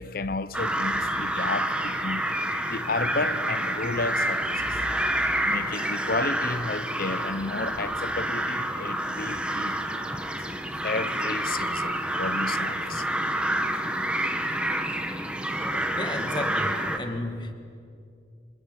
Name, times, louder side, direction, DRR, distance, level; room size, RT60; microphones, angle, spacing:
voice 1, 0.0-2.2 2.7-4.8 5.5-9.7 10.8-13.1 17.1-17.2, left 3 dB, 50° left, 0.8 m, -32 dB
sound 1, 0.5-17.0, right 1 dB, 5° right, 1.6 m, -28 dB
voice 2, 16.0-17.5, left 1 dB, 25° left, 2.2 m, -33 dB
28.5 x 26.0 x 8.0 m
head